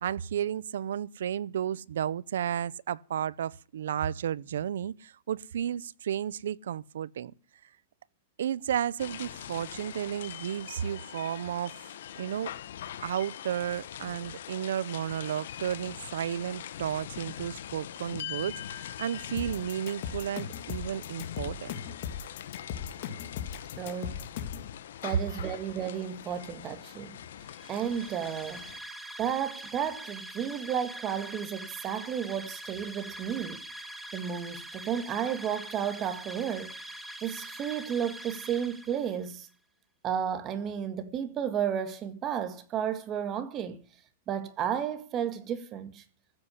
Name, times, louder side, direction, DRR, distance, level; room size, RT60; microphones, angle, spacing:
voice 1, 0.0-7.3 8.4-11.8 12.2-12.5 13.0-21.8, right 9 dB, 80° right, 0.6 m, -33 dB
sound 1, 9.0-28.8, left 10 dB, 75° left, 1.5 m, -43 dB
sound 2, 19.4-24.7, left 8 dB, 50° left, 2.8 m, -37 dB
voice 2, 23.8-24.2 25.0-27.2 27.7-28.7 29.2-33.6 34.1-36.7 37.2-39.5 40.0-43.8 44.3-46.0, right 8 dB, 25° right, 1.9 m, -32 dB
sound 3, 27.5-39.3, right 1 dB, 5° right, 1.5 m, -44 dB
15.0 x 8.2 x 9.7 m
supercardioid pair, 155°, 0 cm